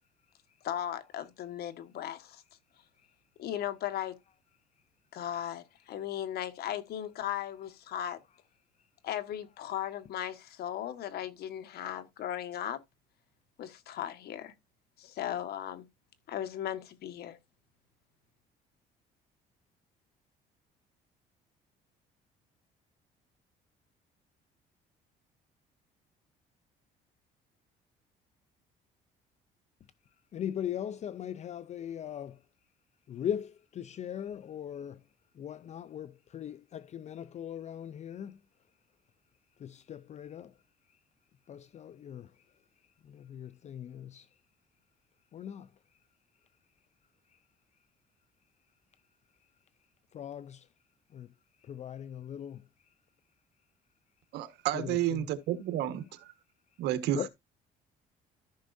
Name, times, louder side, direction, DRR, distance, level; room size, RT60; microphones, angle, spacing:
voice 1, 0.6-2.4 3.4-4.1 5.1-8.2 9.0-12.8 13.6-14.5 15.0-15.8 16.3-17.4, left 11 dB, 70° left, 1.5 m, -37 dB
voice 2, 30.3-32.4 33.1-35.0 35.4-38.4 39.6-40.5 41.5-42.3 43.0-44.3 45.3-45.7 50.1-50.7 51.1-51.3 51.6-52.6 54.7-55.3 57.1-57.3, left 9 dB, 45° left, 0.5 m, -39 dB
voice 3, 54.3-56.3 56.8-57.3, right 12 dB, 85° right, 1.4 m, -31 dB
14.0 x 6.1 x 2.6 m
cardioid pair, 110°, 17 cm